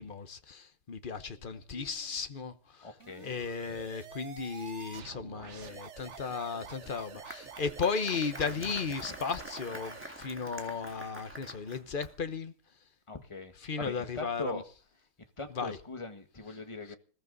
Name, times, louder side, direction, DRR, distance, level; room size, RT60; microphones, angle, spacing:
voice 1, 0.0-2.9 3.2-12.5 13.6-14.6 15.6-15.8, left 5 dB, 50° left, 0.6 m, -35 dB
voice 2, 2.8-3.4 3.7-3.8 9.0-9.2 13.1-14.6 15.4-17.0, left 3 dB, 15° left, 1.5 m, -41 dB
sound 1, 3.0-10.2, right 6 dB, 45° right, 1.0 m, -48 dB
Applause, 6.8-12.3, right 1 dB, 5° right, 1.6 m, -47 dB
20.5 x 15.0 x 4.0 m
omnidirectional pair, 2.4 m